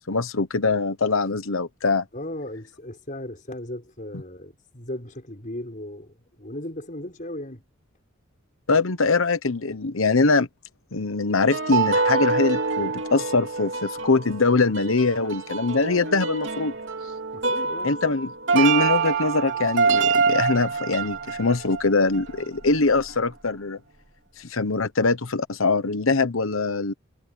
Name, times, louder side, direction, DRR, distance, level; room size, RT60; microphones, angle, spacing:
voice 1, 0.1-2.1 8.7-10.5 10.9-16.7 17.8-23.8 24.4-26.9, left 3 dB, 75° left, 1.1 m, -23 dB
voice 2, 2.1-7.6 17.3-17.9, left 1 dB, 40° left, 5.6 m, -36 dB
sound 1, 11.4-22.7 23.0-23.1, right 5 dB, 60° right, 3.0 m, -26 dB
head